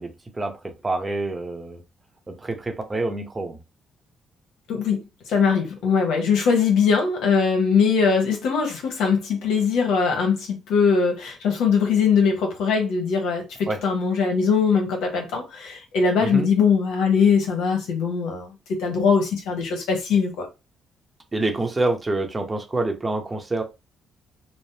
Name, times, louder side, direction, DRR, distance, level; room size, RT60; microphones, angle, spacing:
voice 1, 0.0-1.8 2.3-3.6 13.7-13.8 16.2-16.5 21.3-23.6, right 2 dB, 25° right, 0.7 m, -27 dB
voice 2, 4.7-5.0 5.3-20.5, left 5 dB, 90° left, 1.0 m, -21 dB
3.2 x 2.0 x 2.7 m
cardioid pair, 90°, 0 cm